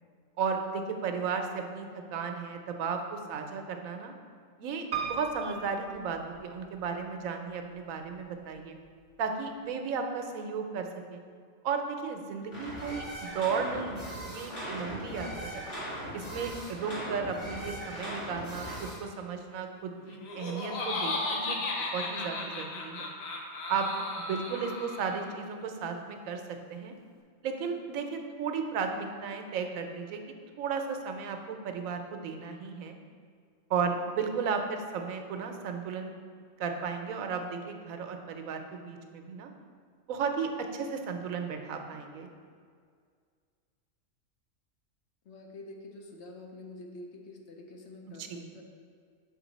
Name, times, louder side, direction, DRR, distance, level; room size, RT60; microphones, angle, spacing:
voice 1, 0.4-4.1 4.6-4.8 5.1-8.8 9.2-11.2 11.6-15.6 16.1-21.6 21.9-23.1 23.7-23.9 24.3-26.4 26.7-26.9 27.4-30.2 30.6-33.0 33.7-36.1 36.6-39.5 40.1-42.3 48.2-48.5, right 5 dB, 85° right, 5 dB, 1.1 m, -34 dB
Piano, 4.9-6.9 7.5-8.2 8.6-8.7 8.9-9.0, right 6 dB, 45° right, 0.6 m, -38 dB
sound 1, 12.5-19.0, equal, 35° left, 2.0 m, -39 dB
Laughter, 20.1-25.3, left 2 dB, 85° left, 1.2 m, -35 dB
voice 2, 45.2-48.6, left 2 dB, 60° left, 2 dB, 0.9 m, -47 dB
6.5 x 4.4 x 4.1 m, 2.1 s
omnidirectional pair, 1.4 m